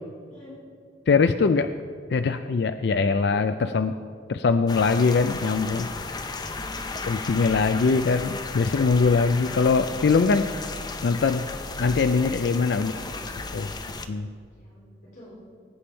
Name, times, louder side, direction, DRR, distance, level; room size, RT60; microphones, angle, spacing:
voice 1, 1.1-1.7 2.1-3.9 4.3-5.9 7.1-10.5 11.0-11.5 11.8-12.9 13.5-13.7 14.1-14.3, left 4 dB, 70° left, 9 dB, 0.4 m, -22 dB
sound 1, 4.7-14.1, left 3 dB, 25° left, 0.6 m, -34 dB
voice 2, 6.5-6.9 12.7-13.2 14.5-15.5, left 1 dB, 50° left, -7 dB, 3.8 m, -46 dB
19.5 x 8.6 x 4.4 m, 2.1 s
head